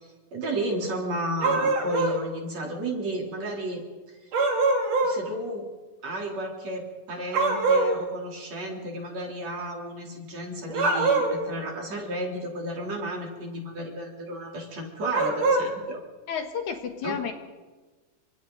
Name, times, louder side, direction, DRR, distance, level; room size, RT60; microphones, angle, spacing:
voice 1, 0.0-3.8 4.2-4.3 5.0-5.7 6.0-16.0 17.0-17.2, right 1 dB, 50° right, 0 dB, 4.8 m, -33 dB
sound 1, 1.4-2.2 4.3-5.2 7.3-8.0 10.7-11.5 15.1-15.7, right 3 dB, 65° right, 4.6 m, -23 dB
voice 2, 16.3-17.3, left 7 dB, 65° left, 6 dB, 2.7 m, -31 dB
28.5 x 26.0 x 4.1 m, 1.3 s
omnidirectional pair, 3.8 m